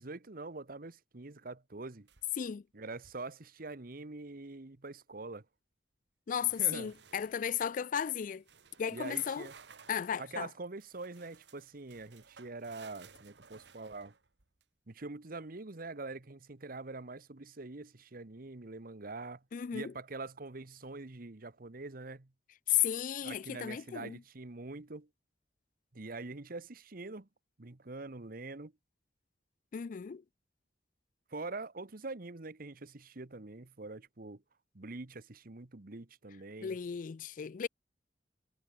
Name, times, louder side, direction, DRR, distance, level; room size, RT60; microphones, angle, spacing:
voice 1, 0.0-2.1 2.7-5.4 6.6-6.9 8.9-9.5 10.2-14.1 14.9-19.4 19.7-22.3 23.2-25.1 25.9-27.3 27.6-28.7 31.3-34.4 34.7-36.8, right 3 dB, 55° right, 1.2 m, -44 dB
sound 1, 2.1-2.6 2.9-3.3 6.4-7.7 8.4-10.1 10.8-14.6, right 6 dB, 85° right, 1.7 m, -58 dB
voice 2, 6.3-8.4 8.8-9.5 9.9-10.5 19.5-19.9 22.7-24.2 29.7-30.2 36.6-37.7, left 9 dB, 50° left, 0.4 m, -34 dB
head